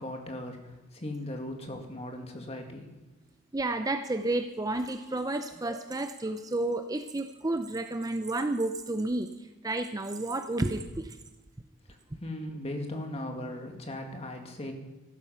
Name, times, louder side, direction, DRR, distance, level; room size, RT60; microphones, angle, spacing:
voice 1, 0.0-2.9 12.1-14.7, left 1 dB, 30° left, 3 dB, 2.0 m, -38 dB
voice 2, 3.5-11.2, right 2 dB, 15° right, 8 dB, 0.5 m, -31 dB
14.5 x 12.5 x 5.7 m, 1.1 s
head